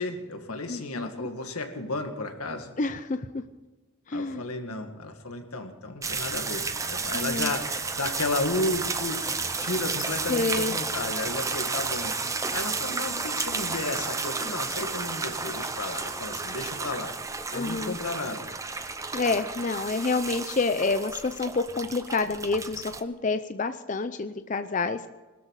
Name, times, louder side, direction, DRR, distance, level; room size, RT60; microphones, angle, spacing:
voice 1, 0.0-2.7 4.1-17.1 17.5-18.5, left 2 dB, 90° left, 5 dB, 2.0 m, -33 dB
voice 2, 0.7-1.3 2.8-3.4 4.1-4.4 7.1-7.5 10.3-10.8 17.5-18.0 19.1-25.0, left 3 dB, 35° left, 10 dB, 0.5 m, -28 dB
sound 1, 6.0-23.0, right 4 dB, 15° right, 0.6 m, -32 dB
21.0 x 13.0 x 4.8 m, 1.2 s
head